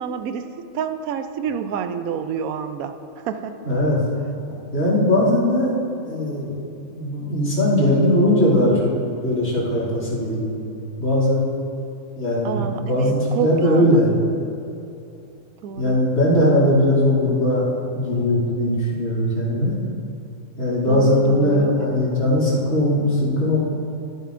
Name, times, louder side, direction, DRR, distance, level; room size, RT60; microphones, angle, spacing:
voice 1, 0.0-3.6 12.4-14.1 15.6-16.1 20.9-22.2, right 7 dB, 85° right, 9 dB, 1.0 m, -29 dB
voice 2, 3.6-4.0 4.7-5.7 6.0-6.6 6.9-8.9 9.2-10.6 11.0-11.4 12.1-14.1 15.8-17.7 17.9-19.7 20.6-23.6, left 1 dB, 65° left, -7 dB, 3.0 m, -19 dB
12.5 x 10.5 x 2.6 m, 2.7 s
omnidirectional pair, 1.5 m